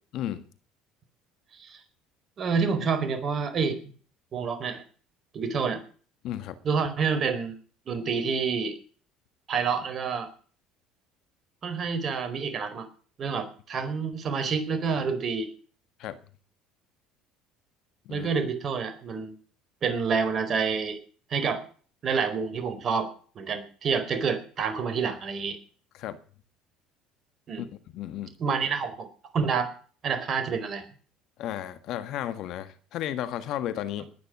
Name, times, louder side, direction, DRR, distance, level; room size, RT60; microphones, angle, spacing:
voice 1, 0.1-0.5 6.2-6.6 16.0-16.2 18.0-18.3 25.9-26.2 27.6-27.7 27.9-28.4 31.4-34.1, left 11 dB, 60° left, 12 dB, 1.7 m, -33 dB
voice 2, 2.4-3.8 4.3-4.8 5.3-5.8 6.6-7.6 7.9-8.7 9.5-10.3 11.6-12.9 13.2-15.5 18.1-19.3 19.8-21.0 21.3-21.6 22.0-23.1 23.3-25.6 27.5-27.7 28.4-29.1 29.3-29.7 30.0-30.9, right 5 dB, 45° right, 10 dB, 4.5 m, -28 dB
20.0 x 9.8 x 6.3 m, 0.43 s
hypercardioid pair, 75°, 0 cm